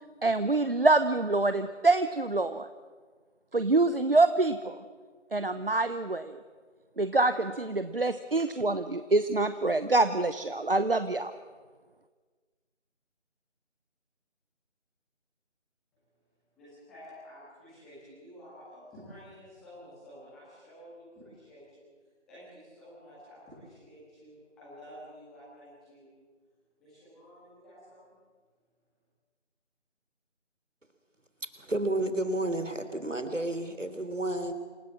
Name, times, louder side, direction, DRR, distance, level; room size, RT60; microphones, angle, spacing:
voice 1, 0.2-2.7 3.5-4.8 5.3-6.3 7.0-11.3, right 2 dB, 50° right, 11 dB, 1.0 m, -25 dB
voice 2, 16.6-21.6 22.3-26.1 26.8-28.2, equal, ahead, -12 dB, 1.8 m, -51 dB
voice 3, 31.4-34.5, right 1 dB, 85° right, 9 dB, 3.5 m, -31 dB
27.5 x 17.0 x 7.6 m, 1.5 s
figure-of-eight pair, 165°, 36 cm